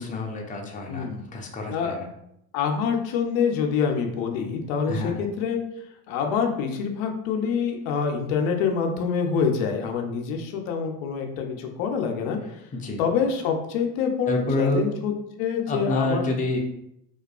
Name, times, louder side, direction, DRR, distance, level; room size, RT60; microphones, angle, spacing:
voice 1, 0.0-2.1 4.9-5.2 12.7-13.0 14.3-14.8 15.7-16.6, left 1 dB, 20° left, 1 dB, 0.5 m, -28 dB
voice 2, 0.9-1.2 1.7-2.0 2.5-5.6 6.1-12.4 13.0-15.1 15.4-16.3, left 6 dB, 90° left, 4 dB, 0.5 m, -26 dB
2.3 x 2.2 x 2.3 m, 0.78 s
supercardioid pair, 85°, 39 cm